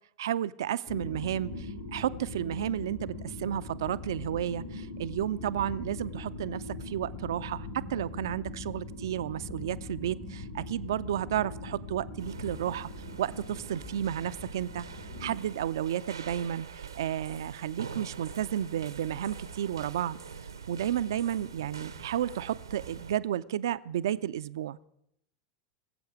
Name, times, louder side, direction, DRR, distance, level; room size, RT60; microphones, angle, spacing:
voice 1, 0.2-12.9 13.2-14.8 15.2-20.2 20.7-24.8, right 10 dB, 65° right, 15 dB, 0.4 m, -32 dB
sound 1, 0.9-15.3, left 2 dB, 75° left, 4.3 m, -41 dB
sound 2, 12.2-23.2, right 6 dB, 80° right, 0.8 m, -44 dB
22.0 x 7.8 x 4.9 m, 0.77 s
figure-of-eight pair, 85°, 2 cm